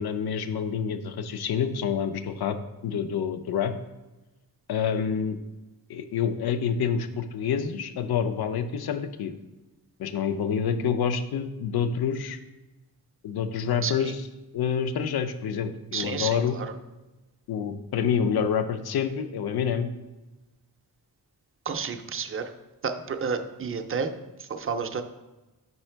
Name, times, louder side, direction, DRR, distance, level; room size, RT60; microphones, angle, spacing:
voice 1, 0.0-2.6 2.8-3.7 4.7-5.4 5.9-9.3 10.0-12.4 13.2-14.2 14.5-16.6 17.5-19.9, left 7 dB, 70° left, 10 dB, 0.5 m, -27 dB
voice 2, 13.8-14.1 15.9-16.7 21.7-22.5 22.8-24.1 24.4-25.0, right 5 dB, 35° right, 7 dB, 0.4 m, -31 dB
5.6 x 4.9 x 4.4 m, 1.1 s
wide cardioid pair, 170°, 39 cm